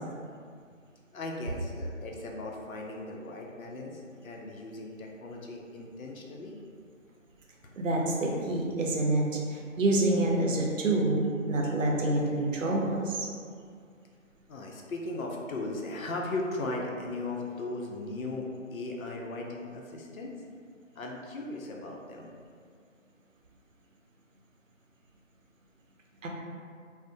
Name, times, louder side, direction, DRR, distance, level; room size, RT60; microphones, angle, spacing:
voice 1, 1.1-6.5 14.5-20.3 21.0-22.3, left 2 dB, 90° left, -1 dB, 0.6 m, -37 dB
voice 2, 7.8-13.3 26.2-26.3, right 2 dB, 70° right, -1 dB, 0.6 m, -27 dB
2.5 x 2.0 x 2.5 m, 2.2 s
figure-of-eight pair, 165°, 40 cm